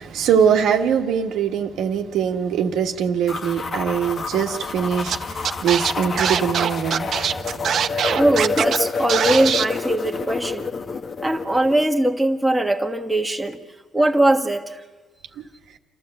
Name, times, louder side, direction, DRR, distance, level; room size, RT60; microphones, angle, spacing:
voice 1, 0.0-8.2, right 8 dB, 85° right, 3 dB, 1.4 m, -23 dB
sound 1, 3.3-11.8, left 4 dB, 45° left, 1.1 m, -29 dB
Scratching (performance technique), 5.1-5.2 5.4-8.8 9.1-9.6, right 8 dB, 65° right, 0.8 m, -22 dB
voice 2, 8.2-10.7 11.2-13.6 13.9-14.7, right 1 dB, 10° right, 2 dB, 1.6 m, -20 dB
28.5 x 13.0 x 7.8 m, 1.3 s
cardioid pair, 90°, 0 cm